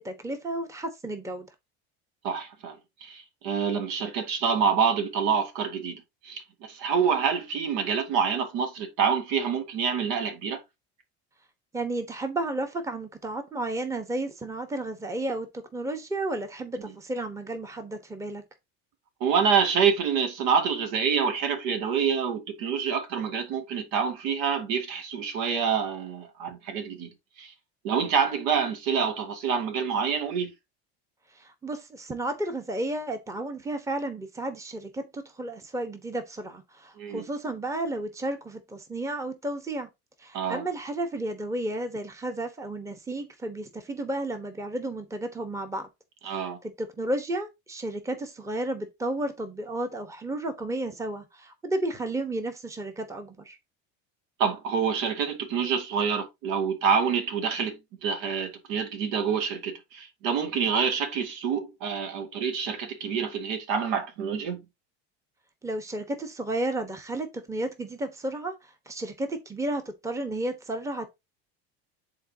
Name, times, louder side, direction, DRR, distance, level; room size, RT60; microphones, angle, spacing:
voice 1, 0.0-1.5 11.7-18.4 31.3-39.9 40.2-45.9 46.2-53.6 65.6-71.1, right 1 dB, 10° right, 1.1 m, -32 dB
voice 2, 2.2-2.8 3.0-10.6 19.2-27.1 27.4-27.5 27.8-30.5 37.0-37.2 40.3-40.6 46.2-46.6 54.4-64.6, right 6 dB, 75° right, 2.2 m, -27 dB
10.0 x 4.0 x 2.8 m
supercardioid pair, 125°, 31 cm